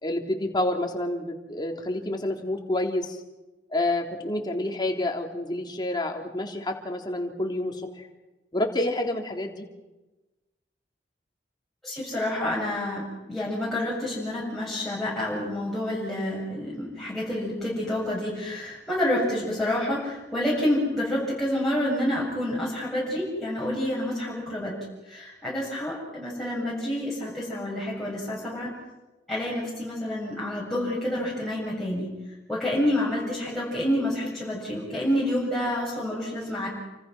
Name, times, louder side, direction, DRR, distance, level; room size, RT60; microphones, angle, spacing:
voice 1, 0.0-3.2 3.7-8.1 8.5-9.7, left 1 dB, 25° left, 2 dB, 3.4 m, -28 dB
voice 2, 11.8-28.7 29.3-32.1 32.5-36.7, left 1 dB, ahead, -7 dB, 7.3 m, -28 dB
29.5 x 27.0 x 6.1 m, 1.1 s
head